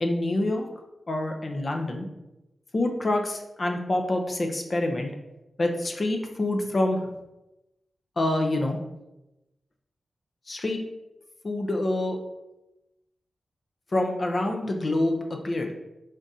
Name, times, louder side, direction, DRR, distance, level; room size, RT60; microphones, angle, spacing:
voice 1, 0.0-0.7 1.1-2.0 2.7-5.1 5.6-7.1 8.2-8.8 10.5-10.8 11.4-12.2 13.9-15.7, left 1 dB, 45° left, 3 dB, 0.6 m, -26 dB
3.6 x 2.5 x 4.0 m, 0.96 s
cardioid pair, 50°, 0 cm